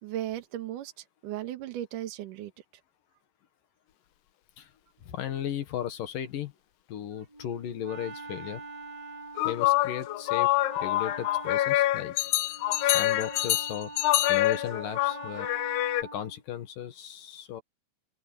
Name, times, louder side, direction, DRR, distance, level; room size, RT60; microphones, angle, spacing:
voice 1, 0.0-2.5, right 12 dB, 60° right, 2.4 m, -36 dB
voice 2, 5.0-6.5 6.9-8.6 9.4-12.1 12.5-15.5 16.1-17.6, left 10 dB, 60° left, 2.4 m, -36 dB
Wind instrument woodwind instrument, 7.3-16.4, right 3 dB, 25° right, 3.7 m, -44 dB
sound 1, 9.4-16.0, left 16 dB, 85° left, 2.3 m, -26 dB
open air
omnidirectional pair, 5.6 m